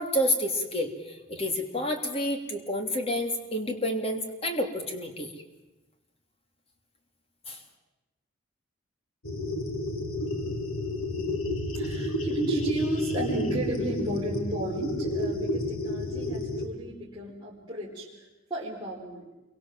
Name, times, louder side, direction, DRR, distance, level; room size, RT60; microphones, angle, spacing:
voice 1, 0.0-5.3 7.5-7.6, left 1 dB, 25° left, 5 dB, 3.1 m, -29 dB
sound 1, 9.2-16.7, left 1 dB, 85° left, 2.3 m, -30 dB
voice 2, 11.7-19.3, right 1 dB, 20° right, -8 dB, 4.2 m, -33 dB
28.0 x 23.5 x 7.5 m, 1.0 s
head